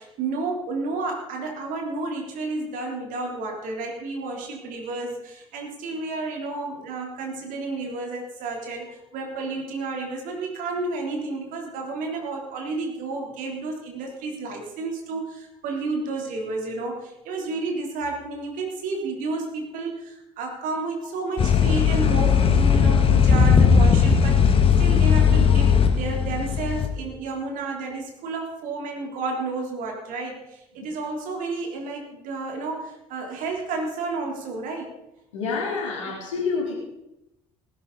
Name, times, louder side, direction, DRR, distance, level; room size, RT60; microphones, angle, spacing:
voice 1, 0.0-34.9 35.4-35.6 36.0-36.1, right 3 dB, 60° right, 1 dB, 3.4 m, -31 dB
sound 1, 21.4-26.9, left 6 dB, 35° left, 1.7 m, -18 dB
voice 2, 35.3-36.7, left 4 dB, 80° left, -1 dB, 3.4 m, -28 dB
18.5 x 10.5 x 4.1 m, 0.87 s
figure-of-eight pair, 55°, 16 cm